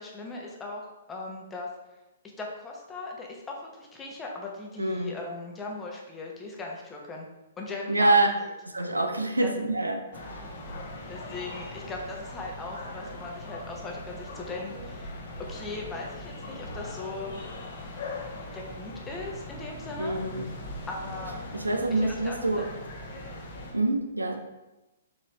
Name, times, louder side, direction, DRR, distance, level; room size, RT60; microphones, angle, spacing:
voice 1, 0.0-1.7 2.4-7.2 7.6-8.4 9.4-9.5 11.1-15.2 15.5-17.3 18.5-20.2 20.9-21.4 21.9-22.6, left 3 dB, 15° left, -1 dB, 0.8 m, -39 dB
voice 2, 4.8-5.2 7.9-8.3 8.6-10.4 20.0-20.5 21.5-22.7 23.7-24.4, right 2 dB, 90° right, 5 dB, 0.5 m, -26 dB
sound 1, 10.1-23.7, left 1 dB, 50° left, 0.9 m, -40 dB
4.5 x 2.9 x 3.1 m, 1.0 s
figure-of-eight pair, 120°, 0 cm